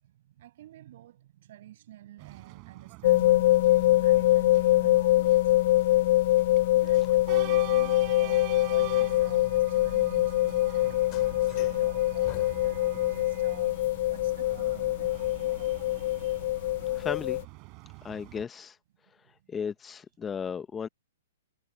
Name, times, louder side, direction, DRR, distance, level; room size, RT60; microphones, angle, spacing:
voice 1, 0.0-3.5 4.0-5.7 6.7-11.1 11.4-15.2 16.5-16.7 19.2-19.3, right 13 dB, 55° right, 7.0 m, -51 dB
sound 1, 2.2-18.4, right 29 dB, 35° right, 4.5 m, -46 dB
sound 2, 3.0-17.4, left 16 dB, 50° left, 0.6 m, -24 dB
sound 3, 5.3-17.5, left 19 dB, 30° left, 3.8 m, -52 dB
voice 2, 17.0-17.4 18.0-18.8 19.5-20.9, left 6 dB, 15° left, 0.9 m, -35 dB
hypercardioid pair, 140°, 0 cm